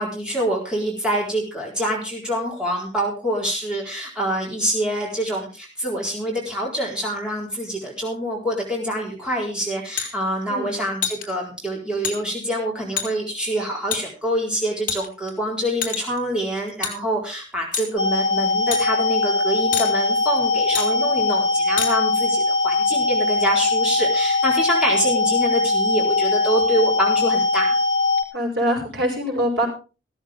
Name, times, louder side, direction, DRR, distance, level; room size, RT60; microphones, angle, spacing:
voice 1, 0.0-27.8, equal, 5° right, -3 dB, 4.2 m, -26 dB
sound 1, 10.0-10.1 11.0-11.2 12.0-12.2 13.0-13.1 13.9-14.0 14.9-15.3 15.8-16.2 16.8-16.9 17.7-17.9 18.7-18.8 19.7-19.9 20.7-20.9 21.8-21.9, left 7 dB, 45° left, 3.7 m, -26 dB
sound 2, 18.0-28.2, left 3 dB, 75° left, 1.3 m, -21 dB
voice 2, 28.3-29.7, equal, 60° right, 1 dB, 6.7 m, -23 dB
15.5 x 14.0 x 3.6 m, 0.33 s
head